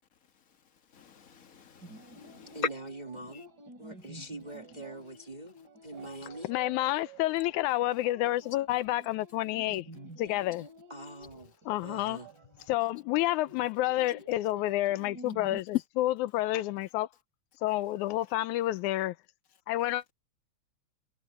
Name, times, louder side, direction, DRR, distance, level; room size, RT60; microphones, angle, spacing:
voice 1, 0.9-2.7 3.3-3.4, left 5 dB, 45° left, 1.2 m, -38 dB
sound 1, 1.8-15.6, right 2 dB, 35° right, 3.0 m, -51 dB
voice 2, 2.5-3.5 3.8-5.5 5.8-6.5 10.9-11.5 11.8-12.3, right 2 dB, 20° right, 1.5 m, -43 dB
voice 3, 6.4-9.9 10.2-10.7 11.7-12.2 12.7-17.1 17.6-19.2 19.7-20.0, left 16 dB, 90° left, 2.1 m, -29 dB
omnidirectional pair, 3.4 m